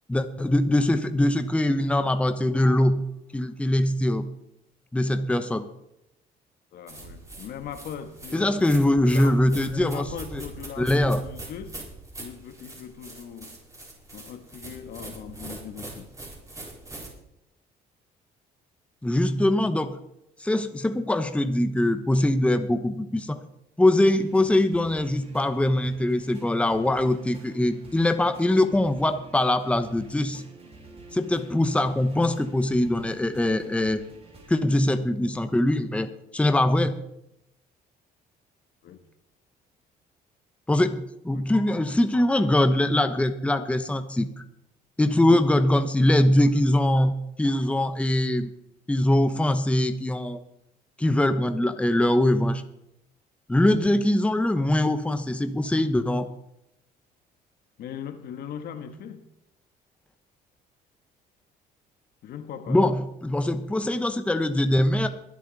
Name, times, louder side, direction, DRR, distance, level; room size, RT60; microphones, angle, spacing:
voice 1, 0.1-3.0 3.3-4.3 4.9-5.6 8.3-10.0 10.3-10.4 10.8-11.2 19.0-20.0 20.4-23.4 23.8-30.4 31.1-34.0 34.5-36.9 40.7-44.4 45.0-48.5 48.9-50.4 51.0-52.6 53.5-56.3 62.7-65.1, left 1 dB, 5° left, 1.0 m, -22 dB
voice 2, 6.7-8.6 9.0-11.8 12.2-13.5 14.1-16.1 38.8-39.0 41.3-41.5 45.1-45.4 57.8-59.2 62.2-63.0, left 8 dB, 65° left, 1.5 m, -39 dB
sound 1, 6.9-17.1, right 2 dB, 20° right, 4.5 m, -42 dB
sound 2, 24.1-34.5, right 3 dB, 35° right, 4.3 m, -49 dB
23.5 x 8.4 x 4.1 m
cardioid pair, 110°, 17 cm